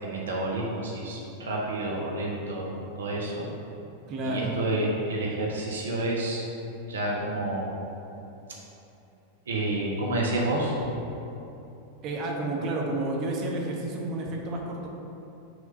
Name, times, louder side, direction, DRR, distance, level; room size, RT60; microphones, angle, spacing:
voice 1, 0.0-3.5 4.2-6.4 6.9-7.8 9.5-10.8, right 1 dB, 65° right, -3 dB, 0.9 m, -29 dB
voice 2, 4.1-4.6 12.0-14.9, right 2 dB, 35° right, -1 dB, 1.0 m, -30 dB
6.0 x 3.7 x 5.5 m, 2.9 s
figure-of-eight pair, 90°, 0 cm